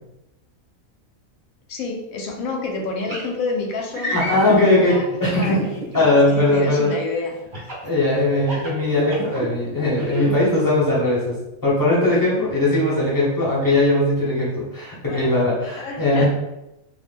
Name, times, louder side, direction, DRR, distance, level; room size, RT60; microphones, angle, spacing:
voice 1, 1.7-5.0 5.4-7.4 15.0-15.4 15.8-16.3, left 3 dB, 80° left, 2 dB, 1.0 m, -29 dB
sound 1, 3.1-3.3 3.9-4.6 5.4-6.0 7.5-7.9 8.4-9.5 9.9-10.3, right 1 dB, 45° right, 0.7 m, -28 dB
voice 2, 4.1-5.6 5.9-6.9 7.8-11.4 11.6-16.3, left 2 dB, 20° left, -6 dB, 0.7 m, -19 dB
2.5 x 2.1 x 3.4 m, 0.93 s
omnidirectional pair, 1.4 m